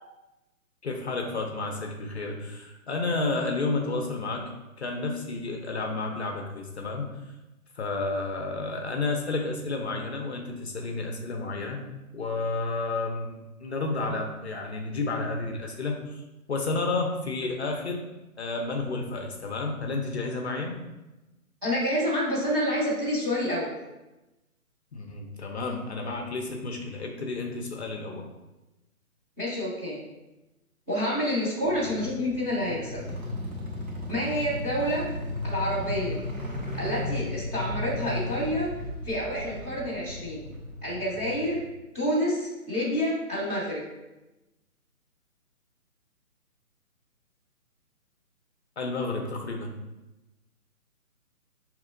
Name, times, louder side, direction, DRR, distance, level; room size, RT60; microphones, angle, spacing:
voice 1, 0.8-4.5 4.8-7.1 7.8-11.9 12.1-16.2 16.5-18.0 18.4-20.8 24.9-28.3 48.8-49.8, left 3 dB, 50° left, 2 dB, 0.6 m, -31 dB
voice 2, 21.6-23.7 29.4-30.0 30.9-33.1 34.1-35.0 35.4-36.2 36.7-38.7 39.0-40.5 40.8-41.6 41.9-43.8, equal, 10° right, -11 dB, 0.7 m, -28 dB
sound 1, 31.6-41.6, left 1 dB, 65° right, 1.2 m, -35 dB
6.0 x 2.9 x 2.5 m, 1.0 s
figure-of-eight pair, 140°, 44 cm